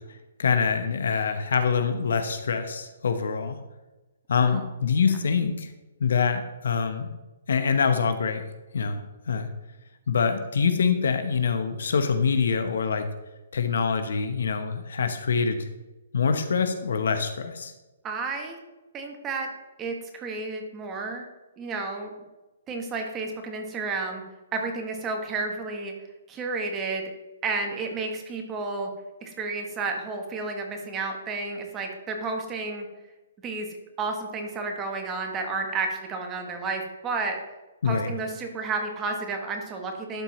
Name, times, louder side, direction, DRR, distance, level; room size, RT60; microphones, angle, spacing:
voice 1, 0.4-3.6 4.3-5.7 6.0-7.1 7.5-8.4 8.7-9.0 9.3-9.5 10.1-13.1 13.5-15.7 16.1-17.7 37.8-38.1, left 5 dB, 75° left, 8 dB, 0.8 m, -25 dB
voice 2, 18.0-18.6 18.9-19.5 19.8-21.3 21.6-22.1 22.7-24.2 24.5-25.9 26.3-27.0 27.4-28.9 29.2-32.9 33.4-33.7 34.0-37.4 37.9-40.2, right 3 dB, 15° right, 3 dB, 1.0 m, -31 dB
11.5 x 4.3 x 3.1 m, 1.1 s
hypercardioid pair, 160°, 0 cm